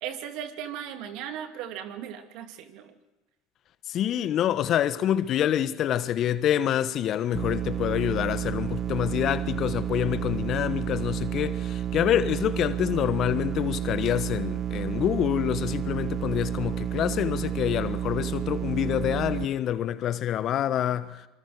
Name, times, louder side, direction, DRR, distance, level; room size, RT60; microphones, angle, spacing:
voice 1, 0.0-3.0, right 9 dB, 60° right, 2.6 m, -37 dB
voice 2, 3.9-21.3, left 11 dB, 50° left, 1.3 m, -27 dB
sound 1, 7.3-19.4, right 11 dB, 40° right, 0.8 m, -31 dB
26.0 x 24.5 x 4.8 m
hypercardioid pair, 75°, 0 cm